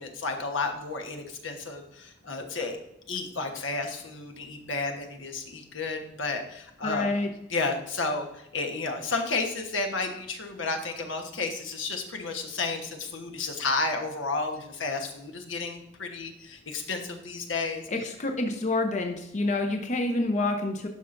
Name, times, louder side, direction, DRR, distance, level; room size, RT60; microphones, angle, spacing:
voice 1, 0.0-2.8 3.1-7.1 7.5-18.1, left 3 dB, 80° left, 4 dB, 1.2 m, -32 dB
voice 2, 6.8-7.3 17.9-20.9, left 2 dB, 40° left, 4 dB, 0.7 m, -28 dB
11.5 x 5.6 x 2.6 m, 0.77 s
head